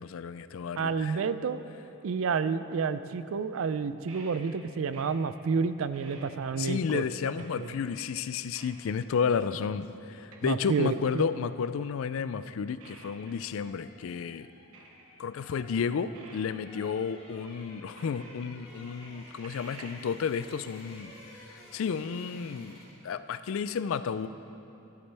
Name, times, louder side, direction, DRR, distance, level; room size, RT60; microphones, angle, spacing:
voice 1, 0.0-1.1 6.6-14.5 15.2-21.1 21.7-22.8 23.0-24.3, left 6 dB, 65° left, 13 dB, 0.3 m, -32 dB
voice 2, 0.8-1.7 2.0-7.0 7.6-7.7 10.4-11.3, right 5 dB, 65° right, 13 dB, 0.4 m, -30 dB
sound 1, 4.1-5.4 5.7-6.8 7.4-8.0 8.5-9.1 9.5-9.6 10.2-11.3 12.3-12.4 12.8-13.4 13.8-13.9 14.7-15.3 16.1-17.4 17.8-18.6 19.0-19.9, right 3 dB, 85° right, 1.2 m, -52 dB
sound 2, 13.1-23.1 23.3-23.5, left 1 dB, 30° left, 2.9 m, -53 dB
12.5 x 12.0 x 3.4 m, 2.9 s
head